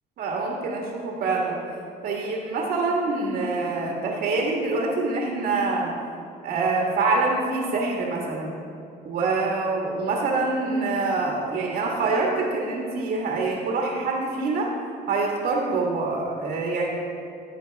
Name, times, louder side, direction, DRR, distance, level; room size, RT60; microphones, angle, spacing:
voice 1, 0.2-1.6 2.0-5.9 6.4-8.5 9.0-14.7 15.1-16.9, right 3 dB, 65° right, -2 dB, 1.7 m, -25 dB
14.5 x 8.5 x 3.4 m, 2.5 s
cardioid pair, 110°, 17 cm